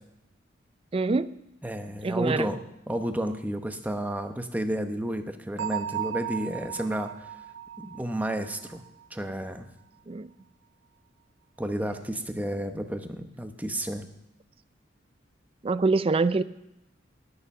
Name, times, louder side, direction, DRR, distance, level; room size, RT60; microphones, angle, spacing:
voice 1, 0.9-1.3 2.0-2.5 10.1-10.3 15.6-16.4, right 3 dB, 30° right, 15 dB, 0.4 m, -25 dB
voice 2, 1.6-2.6 2.9-7.1 7.8-8.8 9.1-9.7 11.6-14.0, right 1 dB, 10° right, 7 dB, 0.9 m, -31 dB
Bell, 5.6-9.2, right 10 dB, 75° right, 0.6 m, -36 dB
18.0 x 7.0 x 5.9 m, 0.86 s
head